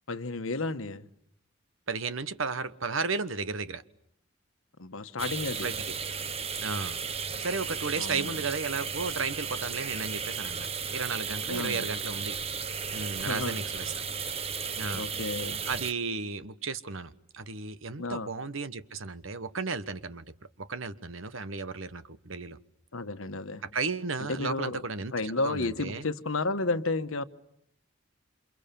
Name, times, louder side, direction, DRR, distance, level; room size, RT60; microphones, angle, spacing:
voice 1, 0.1-1.1 4.8-5.7 8.0-8.4 11.5-11.9 13.2-13.6 14.9-15.6 18.0-18.3 22.9-23.6 24.2-24.8 25.1-27.2, left 3 dB, 80° left, 10 dB, 1.3 m, -32 dB
voice 2, 1.9-3.8 5.6-5.7 6.6-7.0 7.4-12.4 12.9-13.9 14.8-15.1 15.7-20.2 20.6-22.6 23.7-25.1 25.4-26.1, right 4 dB, 75° right, 13 dB, 1.3 m, -34 dB
sound 1, 5.2-15.9, right 6 dB, 30° right, 1.0 m, -34 dB
29.0 x 27.0 x 7.0 m, 0.73 s
head